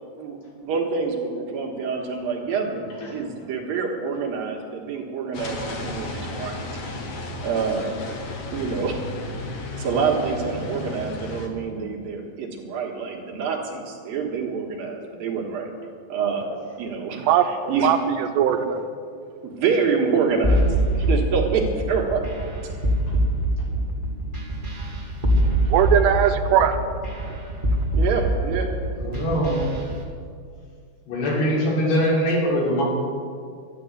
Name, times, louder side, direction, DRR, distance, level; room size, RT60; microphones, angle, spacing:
voice 1, 0.2-6.6 7.4-8.0 8.5-9.0 9.4-15.7 16.1-18.0 19.4-22.3 25.6-25.7 28.0-28.7, right 5 dB, 65° right, 0 dB, 3.1 m, -27 dB
sound 1, 5.3-11.5, left 2 dB, 55° left, 1.8 m, -33 dB
voice 2, 17.8-18.8 25.7-26.8, right 9 dB, 85° right, 8 dB, 3.0 m, -19 dB
sound 2, 20.4-30.0, right 1 dB, 25° right, 1.1 m, -23 dB
voice 3, 29.0-29.6 31.1-32.8, equal, 75° left, -5 dB, 5.9 m, -22 dB
12.5 x 11.0 x 8.0 m, 2.2 s
omnidirectional pair, 4.8 m